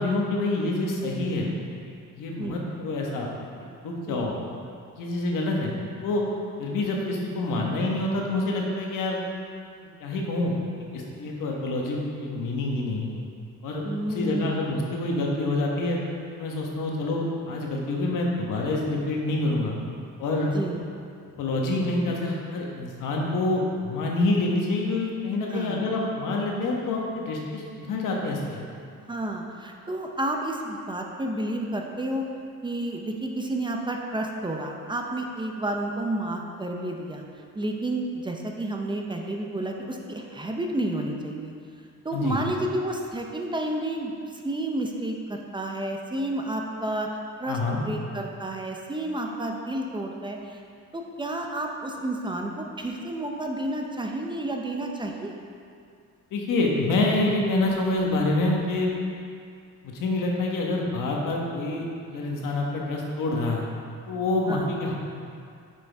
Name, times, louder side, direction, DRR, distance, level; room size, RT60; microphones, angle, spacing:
voice 1, 0.0-1.5 1.9-3.3 3.6-4.3 4.9-5.8 6.0-6.2 6.6-9.2 10.0-10.6 10.9-13.1 13.6-16.0 16.3-19.7 20.2-20.5 21.4-28.6 42.1-42.4 47.5-47.8 56.3-58.9 59.8-63.7 64.1-64.9, left 2 dB, 90° left, -1 dB, 1.3 m, -27 dB
voice 2, 4.1-4.5 13.8-14.7 20.5-20.8 25.5-25.9 29.1-32.2 32.6-37.2 37.5-41.5 42.0-50.6 50.9-55.3 64.5-64.7, right 1 dB, 15° right, 1 dB, 0.6 m, -31 dB
8.8 x 6.1 x 3.5 m, 2.3 s
cardioid pair, 145°, 31 cm